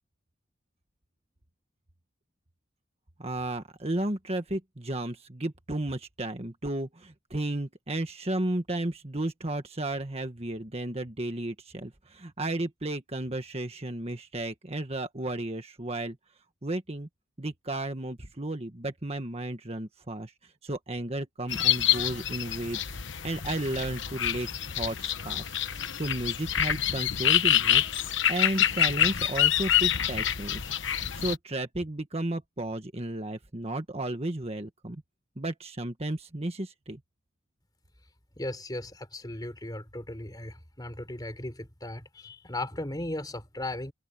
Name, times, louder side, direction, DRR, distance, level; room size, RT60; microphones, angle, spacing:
voice 1, 3.2-16.2 16.6-17.1 17.4-25.5 25.8-27.8 28.3-30.7 31.1-35.0 35.4-37.0, right 1 dB, 30° right, 1.5 m, -33 dB
sound 1, 21.5-31.4, left 11 dB, 65° left, 1.2 m, -27 dB
voice 2, 38.4-43.9, left 1 dB, 20° left, 3.7 m, -37 dB
head